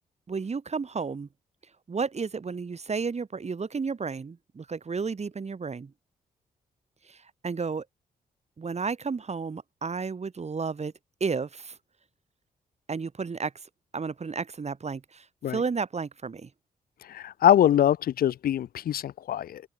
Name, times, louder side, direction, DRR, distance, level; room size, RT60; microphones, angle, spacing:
voice 1, 0.3-1.3 1.9-5.9 7.1-7.2 7.4-7.8 8.6-10.9 11.2-11.7 12.9-13.5 13.9-16.5, right 5 dB, 45° right, 7.9 m, -32 dB
voice 2, 17.1-19.6, left 11 dB, 70° left, 0.7 m, -23 dB
cardioid pair, 60°, 16 cm